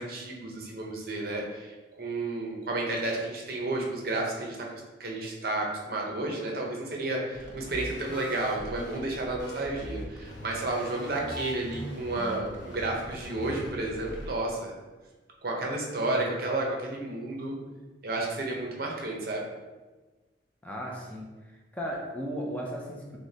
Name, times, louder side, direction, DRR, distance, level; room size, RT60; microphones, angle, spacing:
voice 1, 0.0-4.7 5.0-14.7 15.4-17.6 18.0-19.4, right 2 dB, 50° right, -1 dB, 0.7 m, -32 dB
sound 1, 7.3-14.3, equal, 75° left, 0.9 m, -40 dB
voice 2, 20.6-23.2, equal, 10° left, -2 dB, 0.4 m, -36 dB
6.1 x 2.1 x 2.8 m, 1.2 s
head